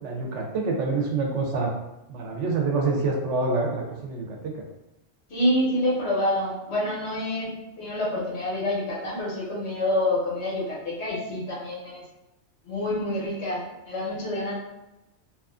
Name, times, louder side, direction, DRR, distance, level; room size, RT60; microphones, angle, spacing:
voice 1, 0.0-1.7 2.1-4.4, right 3 dB, 85° right, 0 dB, 0.9 m, -26 dB
voice 2, 5.3-12.0 12.6-14.6, left 1 dB, 75° left, -5 dB, 1.2 m, -27 dB
2.8 x 2.4 x 2.4 m, 0.94 s
omnidirectional pair, 1.2 m